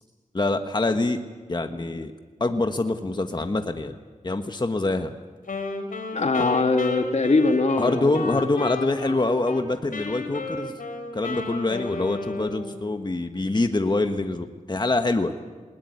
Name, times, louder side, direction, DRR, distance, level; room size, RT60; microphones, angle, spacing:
voice 1, 0.3-1.2 1.5-2.1 2.4-4.0 4.2-5.1 7.8-10.7 11.1-15.3, left 2 dB, 30° left, 7 dB, 1.3 m, -25 dB
Wind instrument woodwind instrument, 5.4-9.6 9.9-12.8, left 3 dB, 85° left, 3.4 m, -33 dB
voice 2, 6.1-8.4, left 3 dB, 55° left, 7 dB, 1.6 m, -22 dB
20.5 x 20.0 x 9.6 m, 1.4 s
wide cardioid pair, 70°, 14 cm